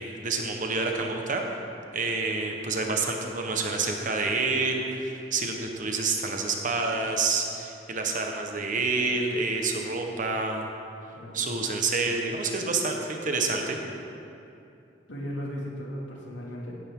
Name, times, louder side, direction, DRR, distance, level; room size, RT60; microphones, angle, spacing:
voice 1, 0.0-1.4 1.9-10.7 11.3-13.8, right 3 dB, 45° right, 2 dB, 1.2 m, -28 dB
voice 2, 11.1-11.7 15.1-16.8, equal, 75° left, -3 dB, 2.6 m, -36 dB
16.5 x 10.5 x 3.8 m, 2.7 s
head